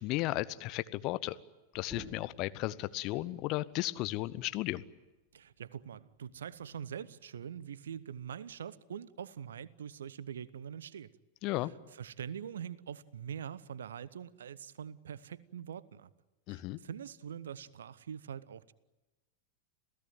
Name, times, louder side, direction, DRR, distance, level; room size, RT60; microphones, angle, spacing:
voice 1, 0.0-1.4 1.7-4.8 11.4-11.7 16.5-16.8, left 18 dB, 40° left, 0.9 m, -34 dB
sound 1, 1.7-6.9, left 1 dB, 15° left, 7.8 m, -56 dB
voice 2, 5.3-11.1 11.6-16.1 16.5-18.7, right 8 dB, 65° right, 0.8 m, -44 dB
27.5 x 17.0 x 9.3 m
figure-of-eight pair, 90°, 0 cm